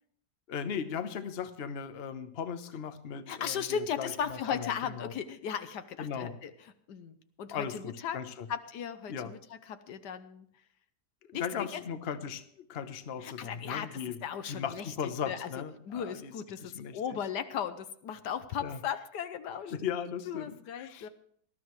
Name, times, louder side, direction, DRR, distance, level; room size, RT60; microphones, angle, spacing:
voice 1, 0.5-5.1 6.0-6.4 7.5-8.5 9.1-9.3 11.4-14.2 14.5-16.3 16.6-17.0 18.6-18.8 19.7-21.1, left 7 dB, 45° left, 9 dB, 1.0 m, -37 dB
voice 2, 3.3-8.2 8.5-10.5 11.3-11.8 13.2-15.5 15.8-19.9 20.3-21.1, left 8 dB, 75° left, 11 dB, 1.4 m, -37 dB
19.5 x 12.5 x 3.2 m, 0.64 s
omnidirectional pair, 1.8 m